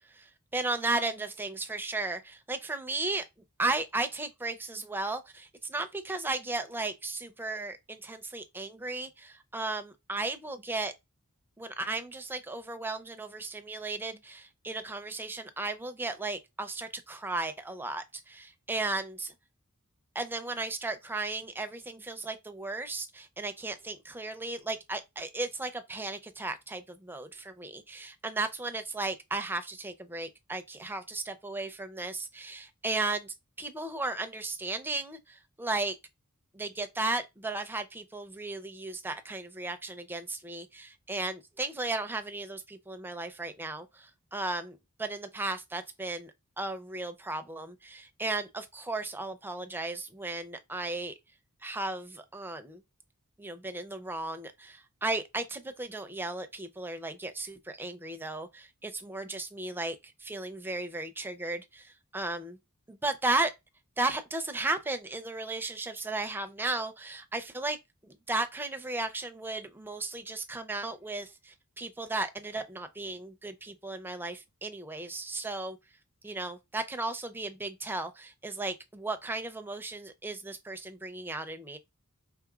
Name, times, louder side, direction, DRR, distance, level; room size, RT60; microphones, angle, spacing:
voice 1, 0.1-3.3 3.6-10.9 11.6-19.3 20.1-36.0 36.5-51.2 51.6-52.8 53.4-62.6 62.9-63.5 64.0-75.8 76.2-81.8, right 2 dB, 10° right, 0.4 m, -35 dB
4.8 x 3.4 x 2.3 m
head